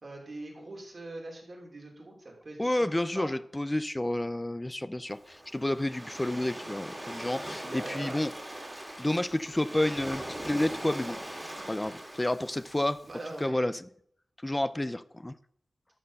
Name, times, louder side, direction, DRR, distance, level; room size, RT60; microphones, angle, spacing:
voice 1, 0.0-3.3 7.3-8.2 13.0-13.7, right 2 dB, 45° right, 3.1 m, -42 dB
voice 2, 2.6-8.3 9.0-11.2 11.7-13.0 13.4-13.8 14.4-15.3, left 1 dB, 15° left, 0.5 m, -30 dB
Waves surf, 5.1-13.3, right 1 dB, 15° right, 2.3 m, -41 dB
12.5 x 4.4 x 6.4 m
wide cardioid pair, 75°, 0 cm